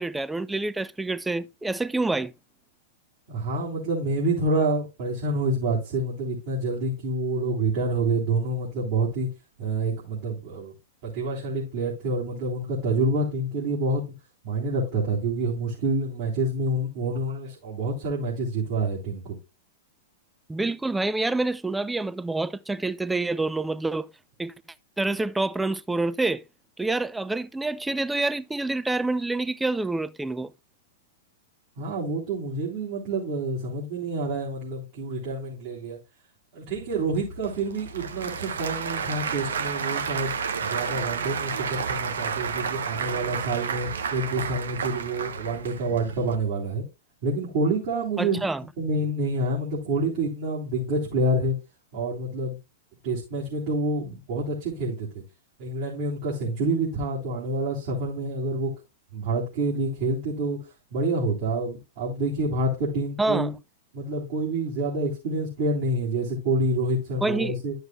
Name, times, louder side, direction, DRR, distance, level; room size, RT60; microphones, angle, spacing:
voice 1, 0.0-2.3 20.5-24.1 24.4-24.5 25.0-26.4 26.8-30.5 48.2-48.6 63.2-63.5 67.2-67.6, right 2 dB, 5° right, 0.3 m, -27 dB
voice 2, 3.3-9.3 9.6-10.7 11.0-14.0 14.4-19.4 31.8-36.0 36.5-40.3 40.7-46.8 47.2-48.4 48.8-51.6 51.9-52.6 53.0-55.2 55.6-58.7 59.1-60.6 60.9-63.5 63.9-67.7, right 2 dB, 55° right, 3.8 m, -27 dB
Applause / Crowd, 36.8-46.4, right 6 dB, 70° right, 0.9 m, -31 dB
12.0 x 6.4 x 2.4 m
figure-of-eight pair, 100°, 0 cm